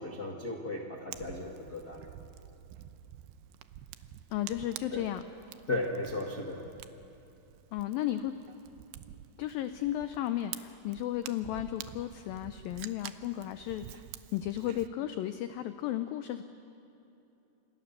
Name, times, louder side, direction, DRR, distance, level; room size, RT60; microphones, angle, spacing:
voice 1, 0.0-2.1 4.9-5.1 5.7-6.6, left 2 dB, 40° left, -1 dB, 1.5 m, -36 dB
Fire, 1.1-14.9, right 12 dB, 85° right, 2.9 m, -48 dB
voice 2, 4.3-5.2 7.7-8.3 9.4-14.0 14.3-16.4, left 12 dB, 80° left, 9 dB, 2.2 m, -34 dB
28.5 x 28.0 x 6.8 m, 2.9 s
omnidirectional pair, 4.9 m